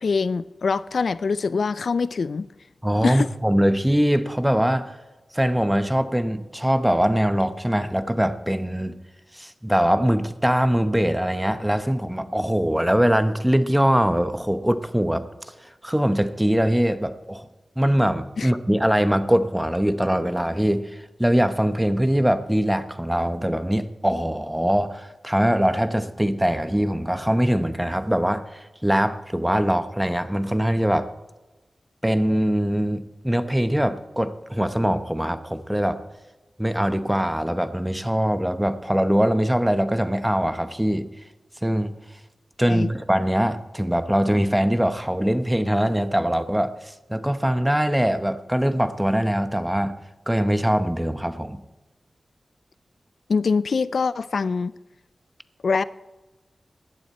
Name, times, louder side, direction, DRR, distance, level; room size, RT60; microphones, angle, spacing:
voice 1, 0.0-2.5 3.0-3.3 18.4-18.5 42.7-42.9 53.3-54.7 55.6-55.8, left 4 dB, 75° left, 17 dB, 0.4 m, -24 dB
voice 2, 2.8-4.9 5.3-8.9 9.3-15.2 15.8-17.5 17.8-20.8 21.2-31.1 32.0-36.0 36.6-41.1 41.6-42.0 42.6-46.7 47.1-50.0 50.3-51.6, equal, 5° right, 10 dB, 0.9 m, -22 dB
17.0 x 11.5 x 4.3 m, 1.1 s
wide cardioid pair, 75°, 0 cm